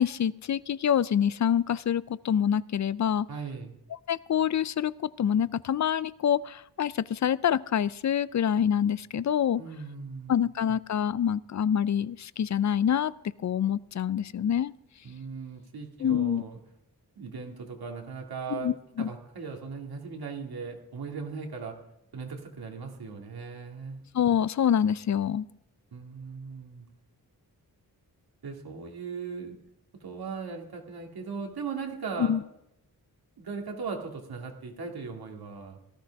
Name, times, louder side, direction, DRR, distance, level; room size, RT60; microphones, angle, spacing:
voice 1, 0.0-3.3 4.1-4.9 5.2-9.6 10.3-13.1 13.4-14.7 16.0-16.4 18.5-19.1 24.1-25.5 32.2-32.4, left 9 dB, 50° left, 18 dB, 0.4 m, -26 dB
voice 2, 3.3-3.7 9.5-10.5 15.0-16.6 17.2-18.7 19.0-21.8 22.1-24.0 25.9-26.9 28.4-29.6 30.0-32.4 33.4-35.8, right 5 dB, 80° right, 2 dB, 2.3 m, -38 dB
18.0 x 14.0 x 3.5 m, 0.80 s
wide cardioid pair, 110°, 37 cm